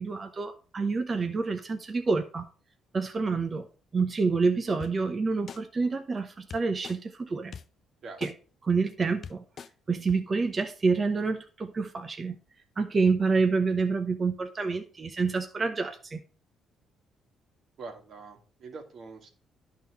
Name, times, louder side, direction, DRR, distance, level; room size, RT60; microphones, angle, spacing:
voice 1, 0.0-2.5 2.9-3.7 3.9-7.5 8.2-8.3 8.6-9.4 9.9-12.4 12.8-16.2, right 4 dB, 35° right, 6 dB, 0.9 m, -28 dB
sound 1, 4.8-4.9 5.5-5.6 6.5-7.0 7.5-7.6 8.2-8.3 8.9-9.0 9.2-9.7 10.1-10.2, left 6 dB, 50° left, 0.5 m, -41 dB
voice 2, 17.8-19.3, right 4 dB, 60° right, 4 dB, 1.8 m, -44 dB
11.0 x 3.8 x 4.6 m, 0.39 s
cardioid pair, 90°, 0 cm